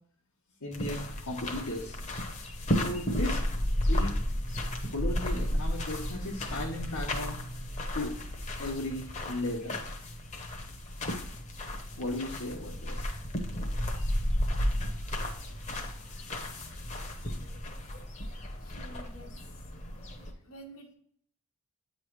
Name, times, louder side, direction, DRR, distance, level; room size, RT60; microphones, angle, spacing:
voice 1, 0.6-2.0 2.7-3.4 3.9-4.2 4.9-7.4 7.9-8.2 8.6-9.8 12.0-13.1, left 1 dB, 85° left, -4 dB, 1.0 m, -36 dB
sound 1, 0.7-20.3, equal, 30° left, 0.8 m, -33 dB
voice 2, 18.6-19.3 20.4-21.0, right 1 dB, 65° left, -1 dB, 1.3 m, -49 dB
8.7 x 3.1 x 4.5 m, 0.63 s
head